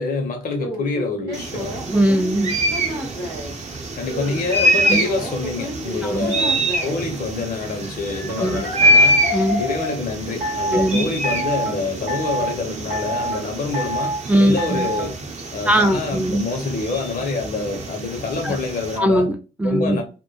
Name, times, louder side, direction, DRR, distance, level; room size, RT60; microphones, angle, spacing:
voice 1, 0.0-1.8 4.0-9.2 9.6-15.2 15.5-19.3 19.6-20.0, left 3 dB, 60° left, 0.7 m, -26 dB
sound 1, 0.6-3.5 4.1-7.0 8.3-9.9 10.4-10.9 11.2-11.8 12.1-12.5 12.9-13.4 13.7-14.2 14.6-15.1, equal, 80° right, 0.8 m, -28 dB
sound 2, 1.3-19.0, equal, 45° right, 0.6 m, -25 dB
voice 2, 1.9-2.5 4.8-5.0 6.0-6.3 8.4-8.6 9.3-9.6 10.7-11.1 14.3-14.9 15.7-16.4 18.4-18.6 19.0-20.0, right 1 dB, 10° right, 0.3 m, -20 dB
2.1 x 2.1 x 3.0 m
hypercardioid pair, 40°, 17 cm